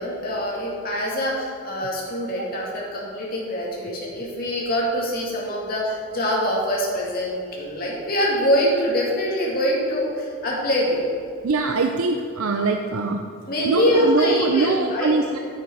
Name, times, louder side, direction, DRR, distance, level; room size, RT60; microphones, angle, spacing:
voice 1, 0.0-11.1 13.5-15.2, equal, 40° left, -4 dB, 2.4 m, -24 dB
voice 2, 11.4-13.2 13.6-15.4, right 3 dB, 75° right, 5 dB, 0.5 m, -23 dB
10.0 x 8.2 x 4.7 m, 2.3 s
head